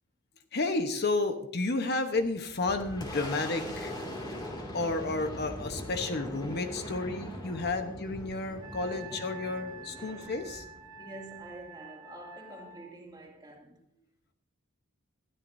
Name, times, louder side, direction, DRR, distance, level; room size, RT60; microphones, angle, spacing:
voice 1, 0.5-3.9 4.7-10.6, left 3 dB, 50° left, 1.0 m, -31 dB
Boom, 2.1-11.5, left 1 dB, 20° left, 2.4 m, -41 dB
Wind instrument woodwind instrument, 8.6-12.9, right 4 dB, 90° right, 1.6 m, -48 dB
voice 2, 10.0-10.3 11.0-13.8, right 1 dB, 20° right, 2.5 m, -47 dB
21.0 x 13.5 x 2.7 m
head